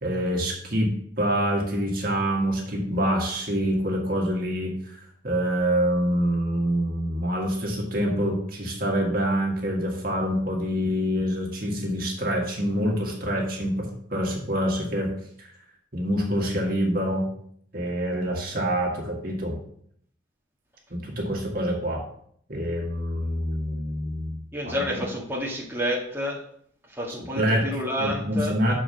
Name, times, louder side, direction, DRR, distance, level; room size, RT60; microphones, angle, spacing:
voice 1, 0.0-15.5 15.9-17.3 17.7-19.6 20.9-22.0 22.5-24.4 24.6-25.1 27.3-27.7 28.0-28.7, equal, 50° right, -1 dB, 1.7 m, -26 dB
voice 2, 24.5-26.4 26.9-28.7, equal, 10° right, -4 dB, 1.5 m, -29 dB
6.1 x 4.6 x 6.4 m, 0.66 s
head